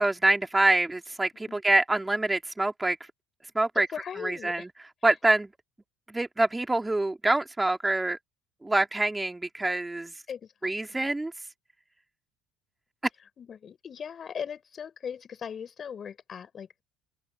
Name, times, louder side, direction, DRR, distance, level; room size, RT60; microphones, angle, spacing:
voice 1, 0.0-3.0 3.5-3.9 4.2-4.7 5.0-5.5 6.1-8.2 8.6-10.1 10.6-11.3, right 2 dB, 10° right, 2.9 m, -25 dB
voice 2, 3.8-4.7 10.3-11.0 13.4-16.8, left 7 dB, 40° left, 5.7 m, -39 dB
open air
hypercardioid pair, 70°, 0 cm